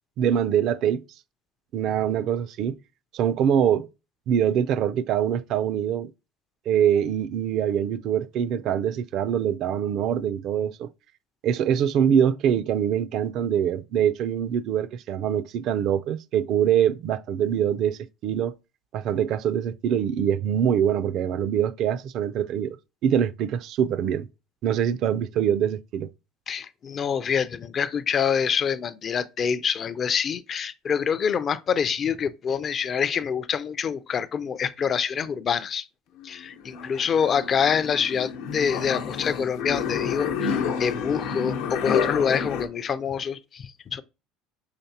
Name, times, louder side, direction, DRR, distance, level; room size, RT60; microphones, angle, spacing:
voice 1, 0.2-1.0 1.7-2.8 3.1-3.9 4.3-6.1 6.7-10.9 11.4-18.5 18.9-22.8 23.0-24.3 24.6-26.1, right 9 dB, 55° right, 0.3 m, -24 dB
voice 2, 26.5-35.9 36.2-44.0, left 7 dB, 35° left, 0.4 m, -26 dB
sound 1, 36.2-42.7, left 7 dB, 85° left, 0.8 m, -29 dB
5.7 x 3.2 x 2.8 m
cardioid pair, 130°, 0 cm